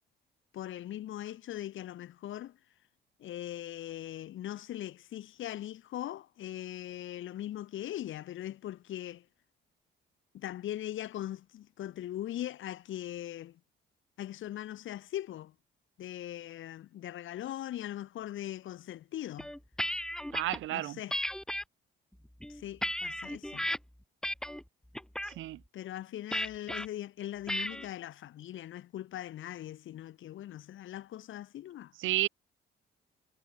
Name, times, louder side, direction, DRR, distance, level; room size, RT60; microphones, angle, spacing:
voice 1, 0.5-2.6 3.2-9.3 10.3-13.6 14.2-15.5 16.0-19.5 20.7-21.2 22.5-23.7 25.7-31.9, left 12 dB, 80° left, 5.8 m, -40 dB
sound 1, 19.4-20.6 21.1-21.6 22.3-23.8 24.2-24.6 25.0-25.3 26.3-26.9 27.5-27.9, equal, 5° left, 4.4 m, -34 dB
voice 2, 20.3-21.0 25.3-25.6 32.0-32.3, right 16 dB, 85° right, 0.9 m, -31 dB
cardioid pair, 90°, 20 cm